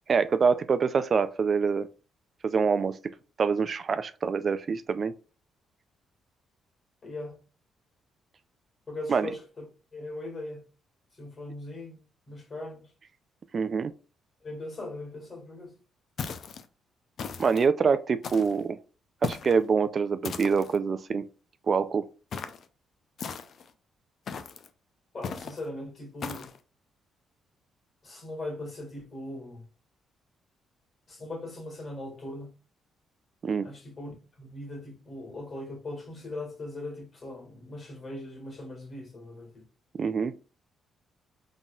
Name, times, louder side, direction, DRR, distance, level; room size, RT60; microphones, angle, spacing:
voice 1, 0.1-1.9 2.4-3.0 3.4-5.1 9.1-9.3 13.5-13.9 17.4-18.8 19.2-21.2 21.7-22.0 33.4-33.7 40.0-40.3, right 5 dB, 45° right, 0.3 m, -25 dB
voice 2, 7.0-7.4 8.9-9.7 9.9-10.7 11.1-12.9 14.4-15.8 25.1-26.5 28.0-29.6 31.1-32.5 33.6-39.6, left 1 dB, 40° left, 2.0 m, -40 dB
sound 1, 16.2-16.7 17.2-17.7 18.2-18.6 19.2-19.6 20.2-20.8 22.3-22.7 23.2-23.7 24.3-24.7 25.2-25.6 26.2-26.6, left 6 dB, 60° left, 0.5 m, -37 dB
4.0 x 3.7 x 2.3 m
cardioid pair, 90°, 0 cm